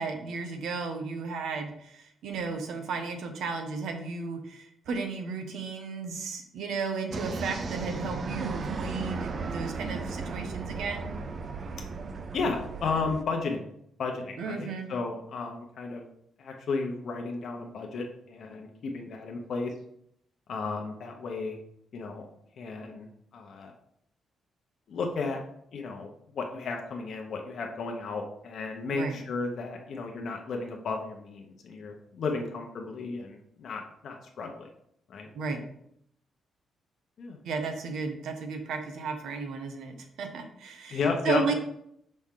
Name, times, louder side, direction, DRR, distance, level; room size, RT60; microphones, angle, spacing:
voice 1, 0.0-11.2 14.4-14.9 28.9-29.2 35.3-35.6 37.4-41.0 41.2-41.5, right 4 dB, 70° right, 5 dB, 0.9 m, -34 dB
sound 1, 7.1-13.2, right 4 dB, 35° right, 0.4 m, -35 dB
voice 2, 12.3-13.7 14.0-16.0 16.4-19.7 20.5-21.6 21.9-22.2 22.6-23.1 23.3-23.7 24.9-25.4 25.7-34.7 35.1-35.3 37.2-37.4 40.9-41.5, left 4 dB, 45° left, 2 dB, 0.8 m, -33 dB
6.2 x 4.3 x 3.7 m, 0.71 s
cardioid pair, 175°, 0 cm